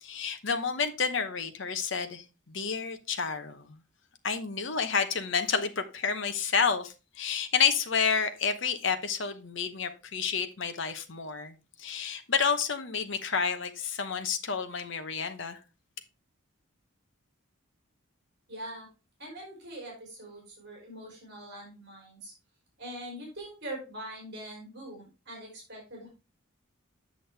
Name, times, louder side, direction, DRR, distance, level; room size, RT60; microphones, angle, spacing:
voice 1, 0.0-3.8 4.2-15.6, left 6 dB, 60° left, 0.9 m, -30 dB
voice 2, 18.5-18.9 19.2-22.3 22.8-26.1, right 1 dB, 50° right, 3.6 m, -43 dB
7.9 x 6.2 x 3.3 m
head